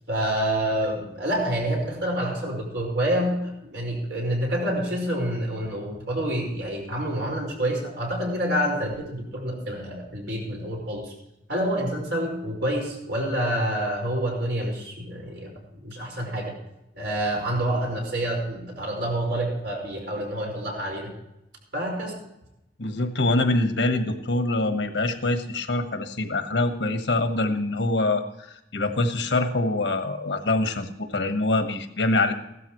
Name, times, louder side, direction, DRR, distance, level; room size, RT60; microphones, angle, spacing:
voice 1, 0.1-11.1 11.5-16.5 16.9-21.1 21.7-22.1, right 1 dB, 80° right, -2 dB, 5.0 m, -27 dB
voice 2, 22.8-32.3, left 2 dB, 90° left, 7 dB, 1.3 m, -24 dB
15.5 x 12.5 x 3.1 m, 0.86 s
head